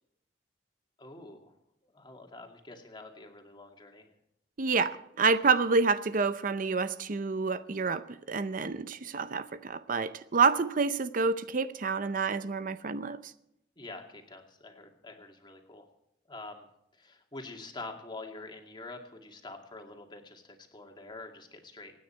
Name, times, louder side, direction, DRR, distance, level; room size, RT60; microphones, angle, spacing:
voice 1, 1.0-1.5 1.8-4.1 13.8-15.9 16.3-16.7 16.9-21.9, left 2 dB, 25° left, 3 dB, 2.3 m, -46 dB
voice 2, 4.6-13.2, right 4 dB, 50° right, 13 dB, 0.6 m, -28 dB
25.5 x 9.6 x 4.5 m, 0.80 s
head